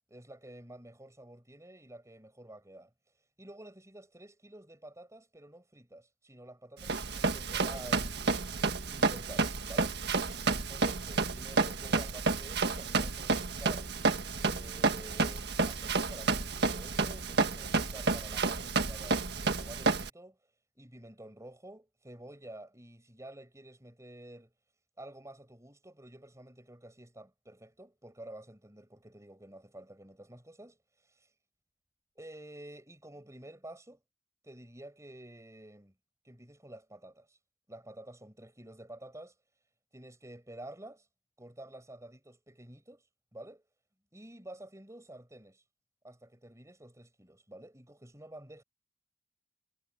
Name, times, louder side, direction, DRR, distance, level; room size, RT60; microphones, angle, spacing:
voice 1, 0.1-2.9 3.4-10.0 10.7-13.9 14.4-20.4 20.8-24.5 25.0-31.3 32.2-34.0 34.4-35.9 36.2-37.4 37.7-39.4 39.9-41.1 41.4-43.6 44.1-45.6 46.0-48.6, right 1 dB, 15° right, 7.5 m, -50 dB
Run, 6.8-20.1, right 4 dB, 65° right, 1.7 m, -30 dB
head